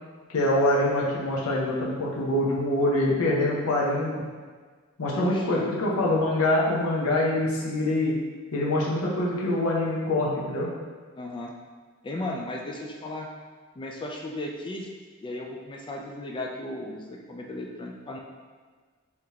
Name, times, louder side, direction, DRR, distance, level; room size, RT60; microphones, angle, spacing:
voice 1, 0.3-4.2 5.0-8.1 8.5-10.7, left 1 dB, 75° left, -4 dB, 0.8 m, -25 dB
voice 2, 5.1-5.7 11.2-11.5 12.0-13.3 13.8-14.9 15.2-18.2, left 1 dB, 20° left, 0 dB, 0.3 m, -35 dB
3.6 x 2.8 x 3.5 m, 1.5 s
head